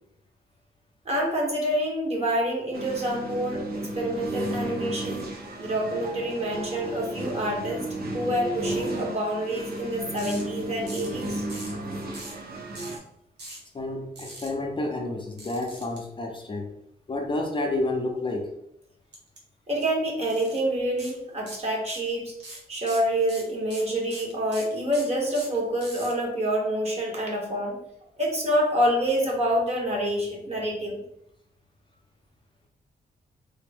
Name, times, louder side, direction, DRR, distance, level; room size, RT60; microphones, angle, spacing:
voice 1, 1.0-5.3 5.6-11.4 19.7-27.8 28.2-31.0, equal, 40° right, -1 dB, 1.0 m, -27 dB
sound 1, 2.7-13.0, right 1 dB, 65° right, 0.6 m, -33 dB
sound 2, 10.2-10.4 10.9-11.2 11.5-11.8 12.1-12.4 12.7-13.0 13.4-13.6 14.2-14.5 15.4-16.0 19.1-19.4 19.7-19.8 20.3-20.6 21.0-21.1 21.5-22.1 22.4-26.1, right 2 dB, 85° right, 1.0 m, -41 dB
voice 2, 13.7-16.7 17.1-18.5, left 2 dB, 30° left, 1 dB, 0.5 m, -30 dB
3.3 x 2.1 x 3.4 m, 0.75 s
wide cardioid pair, 105°, 17 cm